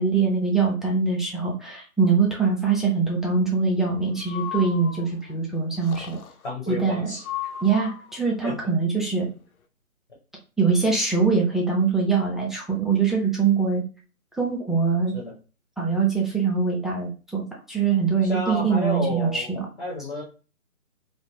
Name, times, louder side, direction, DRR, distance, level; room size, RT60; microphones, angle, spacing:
voice 1, 0.0-6.2 6.7-7.1 7.6-9.3 10.6-13.8 14.3-15.1 15.8-19.7, right 5 dB, ahead, -3 dB, 0.4 m, -23 dB
Breathing, 4.2-5.3 5.8-6.5 7.2-8.2, left 9 dB, 75° left, 0.5 m, -36 dB
voice 2, 6.4-7.2 8.4-8.6 15.1-15.4 18.2-19.5 19.8-20.2, left 1 dB, 35° left, -5 dB, 0.7 m, -31 dB
2.4 x 2.1 x 2.7 m, 0.34 s
hypercardioid pair, 180°, 43 cm